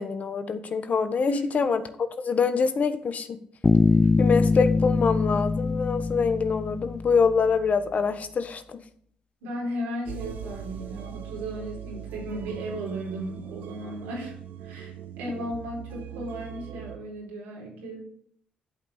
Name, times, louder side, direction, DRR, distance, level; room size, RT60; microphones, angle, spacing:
voice 1, 0.0-1.8 2.2-3.4 4.2-8.8, left 5 dB, 50° left, 10 dB, 1.2 m, -25 dB
voice 2, 1.3-1.8 9.4-18.0, right 1 dB, 90° right, -2 dB, 4.3 m, -35 dB
Bass guitar, 3.6-7.3, left 3 dB, 25° left, 0.3 m, -23 dB
sound 1, 10.1-17.0, right 9 dB, 70° right, 1.1 m, -40 dB
11.0 x 5.6 x 7.2 m, 0.63 s
supercardioid pair, 60°, 3 cm